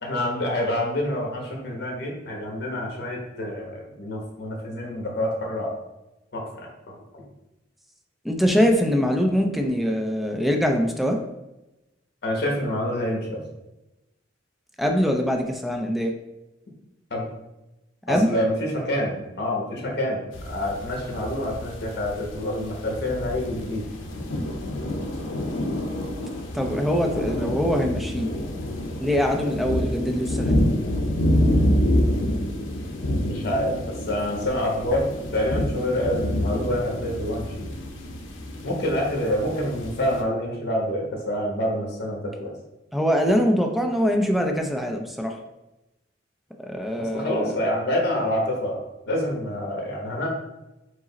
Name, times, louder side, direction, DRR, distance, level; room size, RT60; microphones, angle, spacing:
voice 1, 0.0-5.7 6.3-7.2 12.2-13.4 17.1-17.2 18.1-23.8 33.2-33.8 34.1-37.7 38.6-42.5 47.1-50.3, left 1 dB, 60° left, -1 dB, 1.1 m, -27 dB
voice 2, 8.2-11.2 14.8-16.1 18.1-18.3 26.5-28.3 29.0-30.7 42.9-45.3 46.6-47.5, equal, ahead, 3 dB, 0.4 m, -23 dB
sound 1, 20.3-40.2, left 1 dB, 90° left, 0.6 m, -27 dB
4.8 x 2.0 x 3.9 m, 0.98 s
head